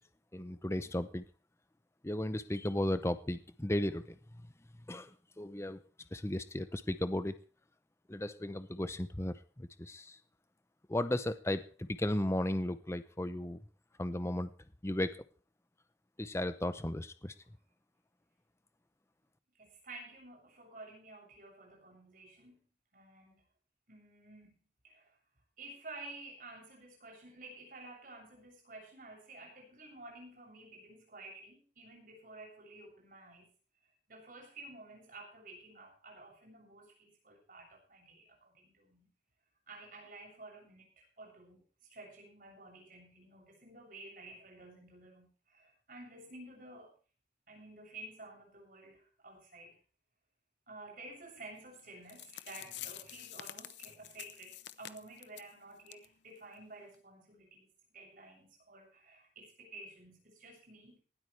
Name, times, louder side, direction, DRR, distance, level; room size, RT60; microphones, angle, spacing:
voice 1, 0.3-1.3 2.0-4.2 4.9-5.8 6.1-7.3 8.1-10.2 10.9-13.6 14.0-14.5 14.8-15.2 16.2-17.3, left 1 dB, 15° left, 12 dB, 0.7 m, -35 dB
voice 2, 19.5-22.6 22.9-23.4 23.9-24.5 24.8-25.2 25.6-33.5 34.1-39.1 39.7-41.6 41.9-46.9 47.5-49.8 50.7-61.0, right 2 dB, 50° right, 0 dB, 7.6 m, -52 dB
sound 1, 51.8-51.9 52.1-55.5 55.9-56.1 56.4-56.5 56.9-57.0, left 12 dB, 80° left, 0.8 m, -47 dB
19.0 x 13.0 x 3.4 m, 0.39 s
head